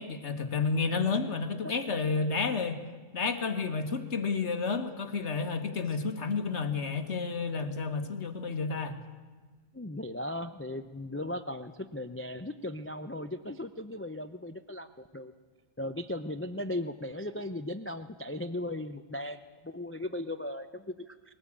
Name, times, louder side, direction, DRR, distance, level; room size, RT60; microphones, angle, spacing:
voice 1, 0.0-2.8 3.1-9.0, left 4 dB, 60° left, 8 dB, 1.7 m, -31 dB
voice 2, 9.7-15.3 15.8-21.3, left 1 dB, 20° left, 11 dB, 0.4 m, -37 dB
21.5 x 18.0 x 8.5 m, 1.4 s
omnidirectional pair, 1.4 m